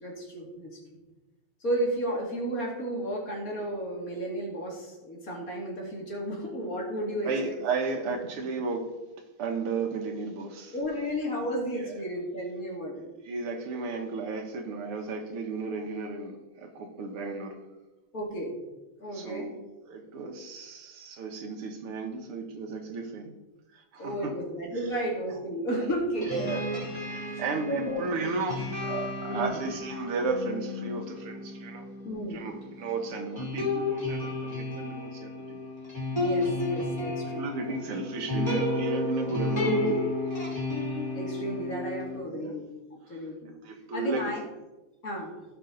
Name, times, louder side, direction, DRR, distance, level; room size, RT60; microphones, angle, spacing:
voice 1, 0.0-0.8 1.6-7.3 10.7-13.1 18.1-18.5 19.0-19.5 24.0-26.4 27.2-28.1 29.3-29.6 32.0-32.4 36.1-37.8 39.3-40.0 41.1-42.7 43.1-43.5 43.9-44.4 45.0-45.3, equal, 40° left, -2 dB, 2.6 m, -33 dB
voice 2, 7.3-9.0 9.4-10.7 11.8-11.9 13.2-17.6 19.1-19.6 19.8-23.3 23.7-24.3 26.3-26.7 27.0-31.8 32.3-35.6 37.3-39.8 42.3-42.5 43.1-43.2 43.6-44.4, right 4 dB, 90° right, 4 dB, 2.2 m, -34 dB
sound 1, 26.1-42.2, left 2 dB, 10° left, 3.7 m, -32 dB
17.0 x 5.8 x 3.9 m, 1.1 s
omnidirectional pair, 2.4 m